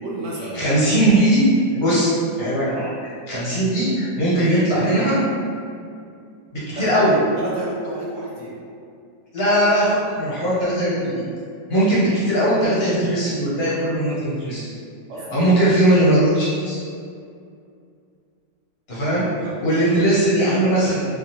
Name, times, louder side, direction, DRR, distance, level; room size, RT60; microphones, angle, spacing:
voice 1, 0.0-0.9 6.7-8.7 15.1-15.5 19.1-19.5 19.9-20.0, right 1 dB, 60° right, -5 dB, 0.8 m, -31 dB
voice 2, 0.5-1.4 1.7-5.2 6.5-7.1 9.3-11.1 11.7-14.7 15.3-16.8 18.9-19.2 19.6-21.1, right 1 dB, 40° left, -9 dB, 1.1 m, -19 dB
4.8 x 2.4 x 2.9 m, 2.4 s
omnidirectional pair, 1.9 m